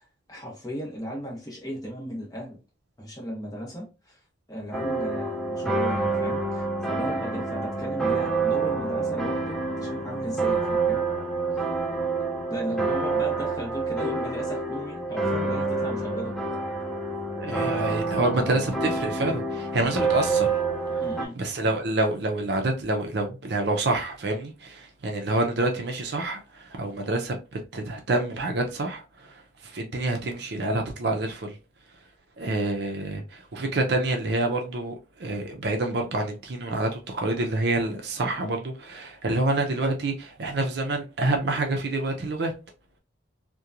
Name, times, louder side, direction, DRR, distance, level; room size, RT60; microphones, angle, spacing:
voice 1, 0.0-2.6 3.0-4.2 4.5-11.1 11.5-11.6 12.5-16.4 21.0-21.4, equal, 20° left, 0.9 m, -36 dB
sound 1, 4.7-21.3, right 3 dB, ahead, 0.5 m, -27 dB
voice 2, 17.4-20.5 21.4-31.6 32.4-42.5, right 2 dB, 55° right, 0.5 m, -27 dB
2.8 x 2.2 x 2.4 m
head